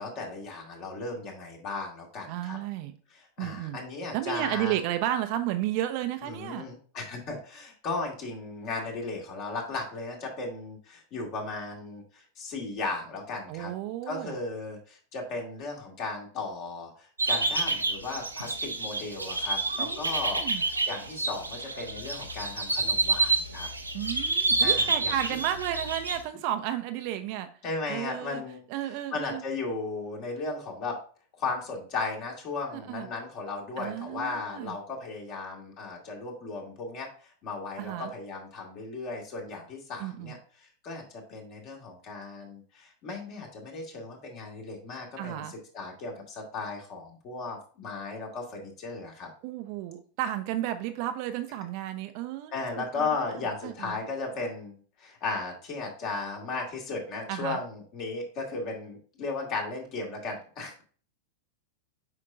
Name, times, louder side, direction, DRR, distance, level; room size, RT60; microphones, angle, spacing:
voice 1, 0.0-2.6 3.1-4.8 6.2-13.7 14.1-23.7 24.6-25.1 27.6-28.6 29.1-31.0 31.3-49.3 52.5-60.8, left 3 dB, 40° left, 0 dB, 2.3 m, -36 dB
voice 2, 2.3-2.9 3.4-3.8 4.1-6.7 13.5-14.4 19.8-20.6 23.9-27.5 27.9-28.4 28.7-29.4 32.7-33.1 33.8-34.8 37.8-38.1 40.0-40.4 45.2-45.5 49.4-53.1 53.6-54.0 57.3-57.6, right 12 dB, 45° right, 8 dB, 0.7 m, -33 dB
sound 1, 17.2-26.2, right 3 dB, 80° right, 0.8 m, -28 dB
7.8 x 5.5 x 2.6 m, 0.41 s
figure-of-eight pair, 90°, 0 cm